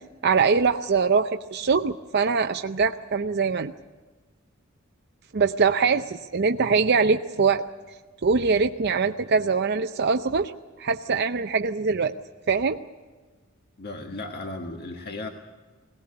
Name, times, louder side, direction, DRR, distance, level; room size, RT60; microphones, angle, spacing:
voice 1, 0.2-3.7 5.3-7.6 8.2-10.5 10.8-12.1 12.5-12.8, right 5 dB, 55° right, 5 dB, 0.6 m, -23 dB
voice 2, 13.8-15.3, left 2 dB, 50° left, 3 dB, 1.6 m, -35 dB
21.5 x 18.0 x 8.7 m, 1.4 s
head